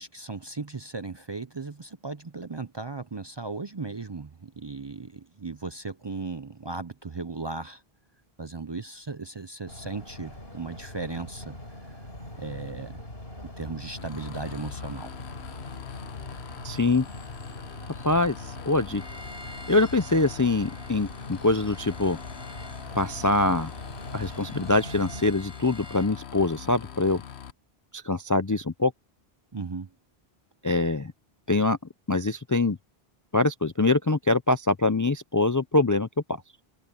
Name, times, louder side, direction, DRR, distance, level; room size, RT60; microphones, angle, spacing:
voice 1, 0.0-7.8 8.4-11.6 12.4-13.0 13.4-15.1 29.5-29.9, right 3 dB, 30° right, 0.5 m, -36 dB
sound 1, 9.7-25.3, left 1 dB, 70° left, 5.0 m, -42 dB
sound 2, 14.0-27.5, left 8 dB, 85° left, 1.2 m, -42 dB
voice 2, 16.6-17.0 18.0-18.3 18.7-19.0 19.7-22.2 22.9-23.7 24.1-27.2 27.9-28.9 30.6-31.1 31.5-31.8 32.1-32.8 33.3-36.1, left 2 dB, 25° left, 0.4 m, -24 dB
Bowed string instrument, 18.9-26.2, equal, 5° right, 7.1 m, -50 dB
open air
omnidirectional pair, 1.1 m